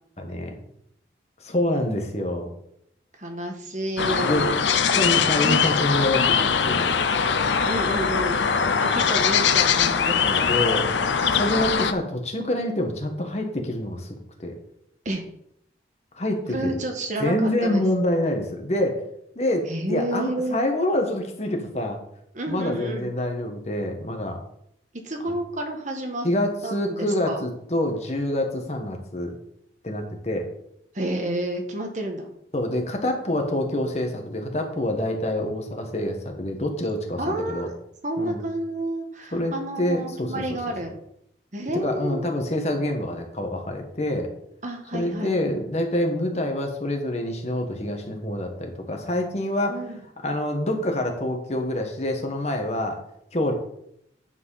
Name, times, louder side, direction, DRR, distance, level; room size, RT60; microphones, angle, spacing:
voice 1, 0.2-0.6 1.4-2.5 4.2-4.5 4.9-7.0 8.5-8.8 10.2-10.8 11.2-14.1 14.4-14.5 16.1-16.8 17.2-19.0 19.3-22.0 22.5-24.4 25.2-25.3 26.2-29.4 29.8-30.4 32.5-37.7 38.2-38.4 39.3-40.3 41.7-44.3 44.9-49.8 50.2-53.0 53.3-53.5, left 1 dB, 35° left, 3 dB, 1.4 m, -26 dB
voice 2, 3.2-4.6 7.6-8.4 8.8-10.5 15.0-15.2 16.5-17.8 19.7-20.6 22.3-23.1 25.0-26.3 26.6-27.4 30.9-32.3 37.2-37.7 38.0-40.9 41.5-42.3 44.6-45.4 49.7-50.0, right 1 dB, 45° right, 3 dB, 1.4 m, -30 dB
sound 1, 4.0-11.9, left 6 dB, 85° left, 0.6 m, -22 dB
9.9 x 4.6 x 5.7 m, 0.73 s
head